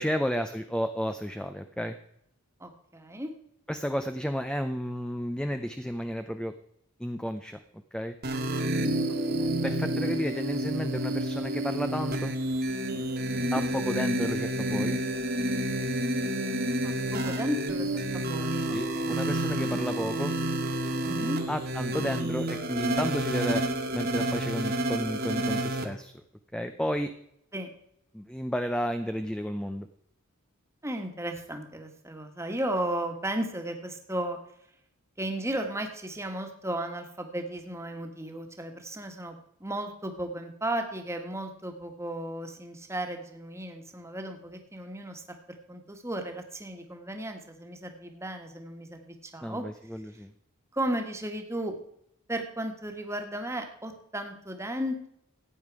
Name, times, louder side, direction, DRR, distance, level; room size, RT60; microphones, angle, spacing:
voice 1, 0.0-2.0 3.7-6.5 7.0-7.6 7.9-8.2 9.6-12.3 13.5-15.0 18.7-20.3 21.5-23.6 23.9-26.1 26.5-27.1 28.1-29.9 49.4-50.3, equal, 5° left, 8 dB, 0.6 m, -32 dB
voice 2, 2.6-3.3 9.4-9.6 13.3-13.6 16.8-19.1 19.6-19.8 21.0-21.4 27.5-27.7 30.8-34.4 35.2-39.3 39.6-45.2 45.7-49.6 50.7-51.7 52.3-55.1, right 1 dB, 15° right, 5 dB, 1.6 m, -35 dB
sound 1, 8.2-25.8, right 1 dB, 50° right, 1.7 m, -29 dB
15.5 x 9.4 x 4.8 m, 0.73 s
head